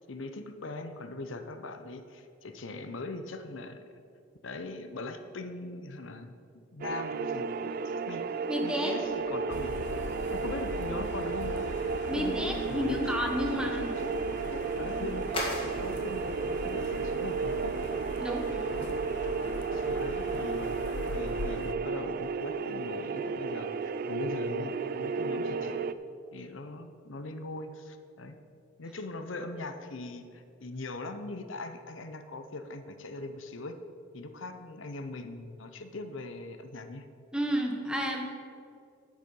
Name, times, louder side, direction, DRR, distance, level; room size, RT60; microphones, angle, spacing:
voice 1, 0.0-3.8 4.4-6.3 6.7-8.2 8.6-9.8 10.3-11.7 12.1-13.2 13.5-13.6 14.0-14.1 14.5-15.2 15.6-17.8 18.7-19.0 19.7-20.8 21.1-25.9 26.3-28.4 28.8-33.8 34.1-37.1, left 2 dB, 85° left, 8 dB, 0.8 m, -40 dB
sound 1, 6.8-25.9, right 5 dB, 50° right, 0.3 m, -33 dB
voice 2, 8.5-8.9 12.1-13.9 18.2-18.6 37.3-38.2, equal, 5° right, 2 dB, 1.1 m, -31 dB
sound 2, 9.0-21.9, left 1 dB, 30° left, 2.0 m, -46 dB
sound 3, 9.5-21.7, left 4 dB, 65° left, 0.4 m, -41 dB
9.6 x 8.2 x 5.4 m, 2.4 s
head